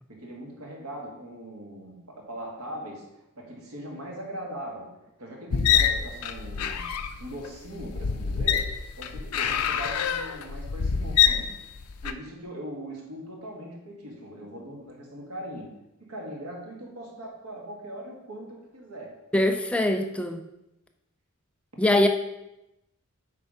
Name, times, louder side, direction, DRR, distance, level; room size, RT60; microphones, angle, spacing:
voice 1, 0.1-6.9 7.2-11.6 12.0-19.1, right 1 dB, 85° right, -1 dB, 1.8 m, -40 dB
sound 1, 5.5-12.1, left 8 dB, 85° left, 0.5 m, -25 dB
voice 2, 19.3-20.4 21.8-22.1, left 1 dB, 5° left, 5 dB, 0.4 m, -22 dB
8.3 x 3.4 x 5.5 m, 0.92 s
head